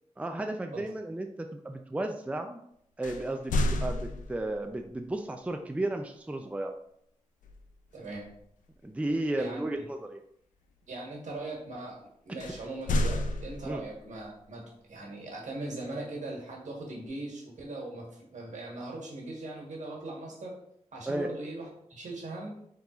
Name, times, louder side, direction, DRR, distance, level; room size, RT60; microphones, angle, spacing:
voice 1, 0.2-2.6 3.0-6.7 8.8-10.2 13.6-13.8 21.1-21.3, right 1 dB, 10° right, 5 dB, 0.4 m, -34 dB
sound 1, 3.0-4.7 7.4-7.7 8.1-8.4 12.4-14.1, left 1 dB, 90° left, 0.4 m, -31 dB
voice 2, 7.9-8.3 9.3-9.9 10.9-20.6 20.9-22.6, right 2 dB, 70° right, -2 dB, 1.3 m, -40 dB
4.0 x 3.8 x 2.4 m, 0.71 s
cardioid pair, 50°, 13 cm